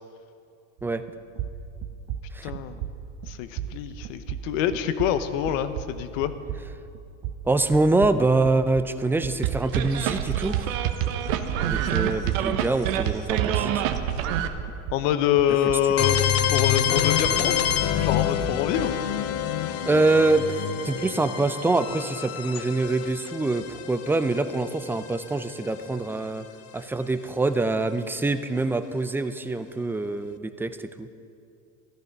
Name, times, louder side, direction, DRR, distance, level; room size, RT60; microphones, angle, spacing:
sound 1, 0.8-1.1 1.4-9.0 9.2-13.6 13.8-16.7 17.0-19.0, right 10 dB, 60° right, 1.2 m, -37 dB
voice 1, 2.4-2.8 3.3-6.3 14.9-16.2 16.5-17.5 18.0-18.9, left 10 dB, 75° left, 11 dB, 1.1 m, -25 dB
voice 2, 7.5-10.7 11.6-13.8 19.9-26.5 26.7-31.1, right 2 dB, 5° right, 10 dB, 0.5 m, -25 dB
sound 2, 9.4-14.5, right 10 dB, 80° right, 1.1 m, -26 dB
sound 3, 16.0-25.7, left 9 dB, 40° left, 0.8 m, -27 dB
14.5 x 13.0 x 5.3 m, 2.5 s
supercardioid pair, 110°, 40 cm